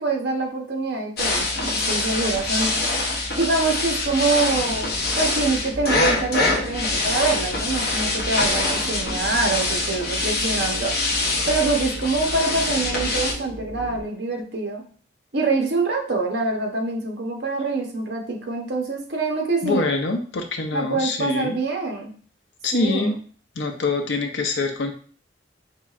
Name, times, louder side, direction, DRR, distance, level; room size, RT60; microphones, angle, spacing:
voice 1, 0.0-2.7 3.3-11.0 11.5-14.8 15.3-19.9 20.7-22.1 22.7-23.2, right 3 dB, 60° right, 2 dB, 0.8 m, -25 dB
sound 1, 1.2-13.3, left 2 dB, 55° left, 0.9 m, -24 dB
sound 2, 4.5-14.0, equal, 40° right, 1.6 m, -37 dB
voice 2, 19.6-21.6 22.6-23.1 23.6-24.9, left 3 dB, 70° left, 5 dB, 0.6 m, -24 dB
4.5 x 3.1 x 2.4 m, 0.43 s
head